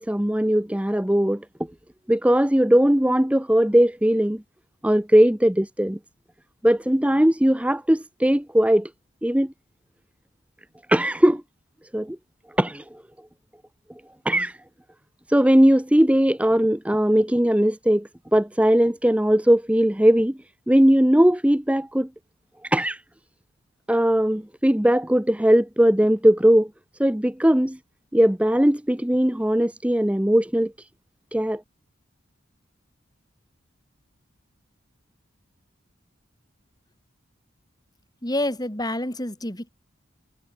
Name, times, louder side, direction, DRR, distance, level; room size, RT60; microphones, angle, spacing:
voice 1, 0.0-1.4 2.1-4.4 4.8-6.0 6.6-8.9 9.2-9.5 10.9-11.4 11.9-12.2 12.6-12.8 14.2-14.6 15.3-20.4 20.7-22.1 22.6-23.0 23.9-26.7 27.0-27.8 28.1-30.7 31.3-31.6, equal, 5° right, 0.6 m, -19 dB
voice 2, 38.2-39.7, left 1 dB, 20° left, 3.0 m, -28 dB
head